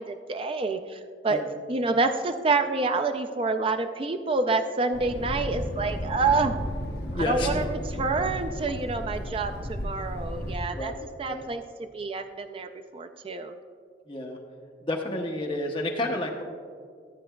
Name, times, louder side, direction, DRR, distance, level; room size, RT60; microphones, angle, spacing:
voice 1, 0.0-1.4 1.7-6.6 7.1-10.9 11.2-13.5, right 3 dB, 30° right, 7 dB, 0.3 m, -28 dB
Thunder, 4.9-10.6, equal, 60° left, 0.9 m, -33 dB
voice 2, 7.1-7.7 10.7-10.9 11.3-11.4 14.1-14.4 14.8-16.4, left 1 dB, 30° left, 1 dB, 0.8 m, -30 dB
14.0 x 8.5 x 2.2 m, 2.1 s
head